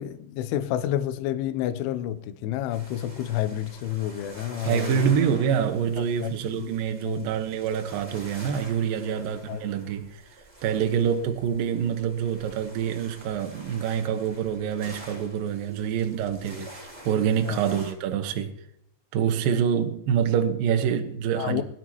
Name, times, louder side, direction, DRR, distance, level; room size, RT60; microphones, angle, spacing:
voice 1, 0.0-5.2 6.0-6.3 7.1-7.3 9.5-9.6 17.4-17.6 21.4-21.6, left 12 dB, 80° left, 3.0 m, -29 dB
sound 1, 2.7-17.9, right 1 dB, 15° right, 1.3 m, -46 dB
voice 2, 4.7-10.2 10.6-18.5 19.1-21.6, right 8 dB, 80° right, 2.0 m, -26 dB
21.5 x 12.0 x 3.0 m
omnidirectional pair, 6.0 m